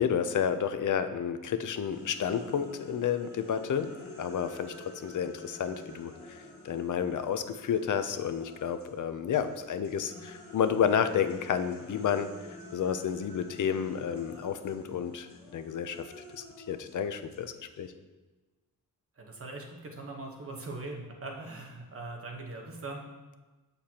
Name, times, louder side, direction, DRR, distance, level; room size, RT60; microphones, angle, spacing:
voice 1, 0.0-3.9 4.2-12.3 12.7-16.1 16.3-17.9, left 8 dB, 55° left, 10 dB, 0.5 m, -31 dB
sound 1, 1.9-9.0 9.3-17.9, left 1 dB, 75° left, 2.1 m, -49 dB
voice 2, 19.2-23.0, right 2 dB, 40° right, 1 dB, 1.0 m, -41 dB
7.6 x 6.8 x 2.9 m, 1.2 s
wide cardioid pair, 170°, 36 cm